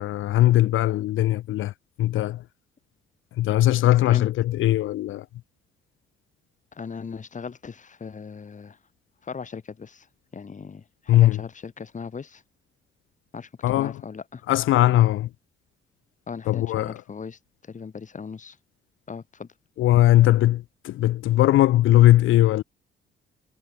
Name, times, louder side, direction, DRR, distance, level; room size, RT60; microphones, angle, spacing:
voice 1, 0.0-1.7 2.0-2.4 3.4-5.3 11.1-11.4 13.6-14.0 14.5-15.3 16.5-17.0 19.8-22.6, left 14 dB, 85° left, 4.0 m, -19 dB
voice 2, 6.7-8.8 9.2-10.1 10.3-12.4 13.3-13.5 13.7-14.4 14.9-15.1 16.3-18.6 19.1-19.5, left 5 dB, 40° left, 7.6 m, -38 dB
cardioid pair, 90°, 20 cm